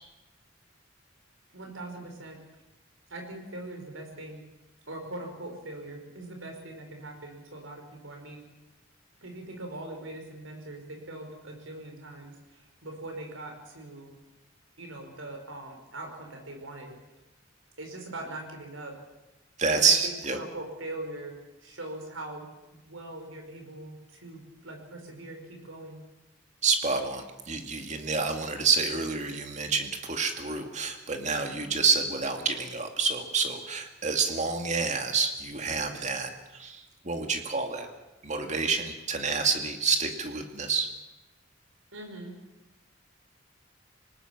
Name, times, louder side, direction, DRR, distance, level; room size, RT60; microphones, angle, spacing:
voice 1, 1.5-2.4 3.1-4.4 4.9-8.5 9.2-14.2 14.8-17.0 17.8-19.0 19.7-26.0 41.9-42.4, right 2 dB, 85° right, 3 dB, 5.3 m, -41 dB
voice 2, 19.6-20.4 26.6-37.9 38.2-40.9, right 4 dB, 35° right, 5 dB, 2.3 m, -28 dB
26.5 x 19.5 x 6.1 m, 1.0 s
head